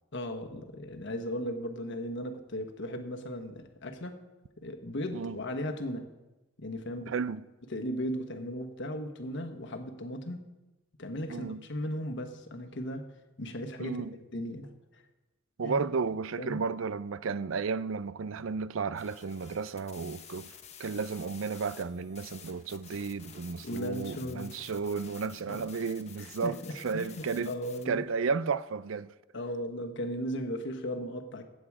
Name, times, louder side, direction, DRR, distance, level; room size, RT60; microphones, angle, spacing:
voice 1, 0.1-4.2 4.6-6.1 6.6-7.1 7.7-10.4 11.0-13.0 13.4-15.0 15.6-15.8 16.4-16.6 23.6-24.5 25.5-25.6 26.2-28.0 29.3-31.4, equal, 65° left, 1.3 m, -37 dB
voice 2, 7.1-7.4 11.3-11.6 13.8-14.1 15.6-20.5 20.8-27.5 27.9-29.1, right 5 dB, 75° right, 0.5 m, -33 dB
sound 1, 19.0-27.8, left 7 dB, 35° left, 1.0 m, -51 dB
16.0 x 8.7 x 4.8 m
head